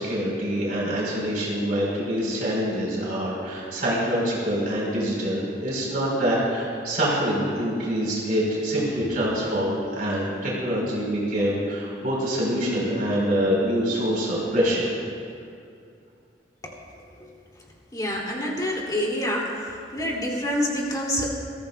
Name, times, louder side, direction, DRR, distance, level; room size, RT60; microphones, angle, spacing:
voice 1, 0.0-14.9, equal, 50° right, -5 dB, 3.8 m, -25 dB
voice 2, 17.9-19.5 19.9-21.3, equal, 20° left, -3 dB, 2.4 m, -26 dB
22.0 x 14.5 x 2.2 m, 2.4 s
head